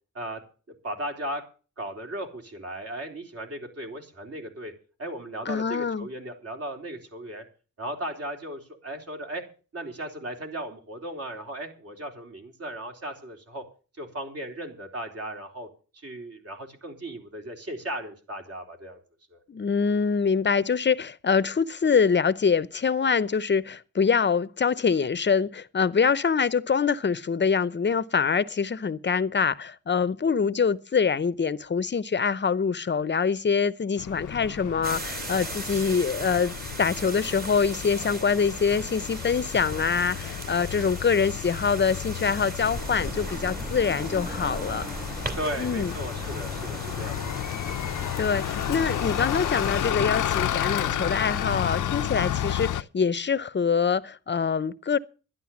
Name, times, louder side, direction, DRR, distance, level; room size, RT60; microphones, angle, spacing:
voice 1, 0.8-1.4 1.8-4.7 5.0-7.4 7.8-9.4 9.7-13.6 14.0-15.7 15.9-19.0 19.3-19.4 45.4-47.3, right 1 dB, 50° right, 3.8 m, -36 dB
voice 2, 5.5-6.1 19.5-36.5 36.8-44.9 45.6-45.9 48.2-55.0, left 6 dB, 35° left, 0.7 m, -25 dB
Bus, 34.0-52.8, left 11 dB, 75° left, 0.6 m, -32 dB
sound 1, 34.8-49.9, right 2 dB, 30° right, 2.5 m, -38 dB
sound 2, 42.6-52.6, equal, 15° right, 1.8 m, -42 dB
11.5 x 11.5 x 7.1 m
wide cardioid pair, 105°, 31 cm